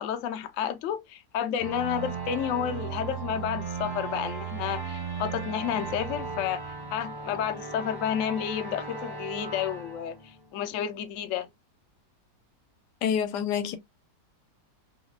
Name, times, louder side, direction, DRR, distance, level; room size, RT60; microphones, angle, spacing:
voice 1, 0.0-6.6 6.9-11.5, left 9 dB, 70° left, 0.7 m, -31 dB
sound 1, 1.6-10.9, right 5 dB, 35° right, 0.4 m, -36 dB
voice 2, 13.0-13.8, left 8 dB, 85° left, 1.2 m, -27 dB
3.9 x 2.1 x 2.3 m
omnidirectional pair, 1.8 m